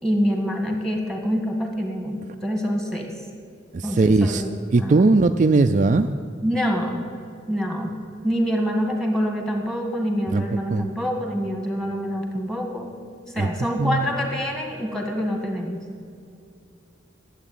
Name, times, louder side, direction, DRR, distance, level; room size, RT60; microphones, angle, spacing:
voice 1, 0.0-3.2 3.8-4.5 4.8-5.0 6.4-7.1 7.5-7.9 8.2-12.9 13.3-15.8, equal, 5° left, 2 dB, 2.0 m, -26 dB
voice 2, 3.7-4.4 4.7-6.1 10.3-10.9 13.4-13.5 13.8-14.1, right 3 dB, 40° right, 7 dB, 0.4 m, -19 dB
12.5 x 8.1 x 9.3 m, 2.4 s
head